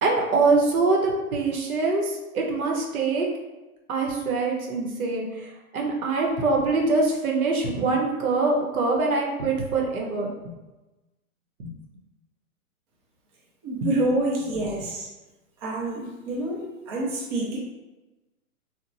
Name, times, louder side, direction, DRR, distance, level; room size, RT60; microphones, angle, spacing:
voice 1, 0.0-2.1 2.3-3.3 3.9-5.3 5.7-10.5 11.6-11.7 13.8-13.9, right 3 dB, 80° right, 0 dB, 0.8 m, -24 dB
voice 2, 13.6-15.1 15.6-17.6, right 2 dB, 30° right, -4 dB, 0.5 m, -27 dB
2.8 x 2.1 x 2.5 m, 1.1 s
hypercardioid pair, 130°, 43 cm